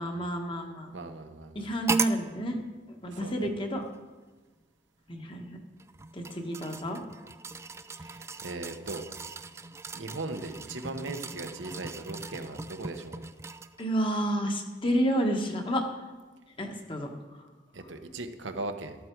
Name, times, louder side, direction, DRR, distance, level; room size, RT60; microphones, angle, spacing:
voice 1, 0.0-0.9 1.5-2.6 3.0-3.8 5.1-5.6 6.1-7.0 13.8-15.8 16.6-17.1, equal, 25° left, 3 dB, 1.4 m, -30 dB
voice 2, 0.9-1.6 3.1-3.5 8.0-9.0 9.9-13.2 17.7-19.0, right 2 dB, 75° right, 6 dB, 1.1 m, -38 dB
sound 1, 1.9-2.2 3.3-3.4 5.8-13.9 14.3-14.4, right 4 dB, 15° right, 0.3 m, -38 dB
13.0 x 11.5 x 4.6 m, 1.3 s
head